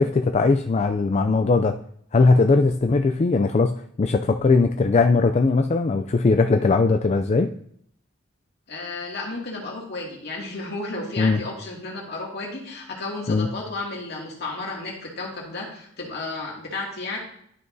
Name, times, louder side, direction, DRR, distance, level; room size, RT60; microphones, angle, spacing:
voice 1, 0.0-1.7 2.1-3.7 4.0-7.5 11.2-11.4 13.3-13.5, left 3 dB, 35° left, 7 dB, 0.4 m, -19 dB
voice 2, 8.7-17.2, left 2 dB, 55° left, -3 dB, 2.4 m, -33 dB
12.0 x 5.9 x 2.7 m, 0.68 s
head